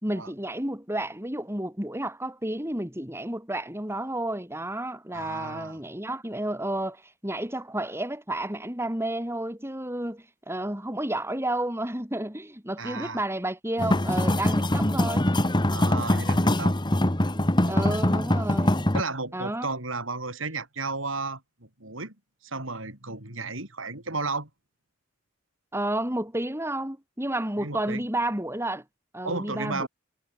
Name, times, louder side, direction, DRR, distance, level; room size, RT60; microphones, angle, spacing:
voice 1, 0.0-15.3 17.7-18.9 19.3-19.7 25.7-28.8 29.1-29.9, right 1 dB, 10° right, 5.4 m, -31 dB
voice 2, 5.1-5.8 12.8-13.2 15.7-16.8 17.7-18.0 18.9-22.1 22.4-24.5 27.6-28.0 29.2-29.9, right 3 dB, 70° right, 7.4 m, -33 dB
sound 1, 13.8-19.0, left 1 dB, 20° left, 1.7 m, -23 dB
head